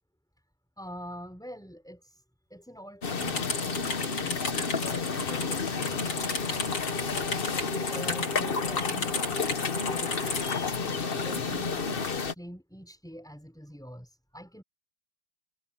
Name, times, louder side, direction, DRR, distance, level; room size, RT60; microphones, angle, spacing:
voice 1, 0.8-2.2 2.5-6.7 7.9-9.5 9.8-10.2 10.7-14.6, equal, ahead, 5.2 m, -46 dB
sound 1, 3.0-12.3, left 5 dB, 35° left, 0.9 m, -31 dB
sound 2, 3.2-10.6, left 3 dB, 70° left, 5.5 m, -35 dB
omnidirectional pair, 2.3 m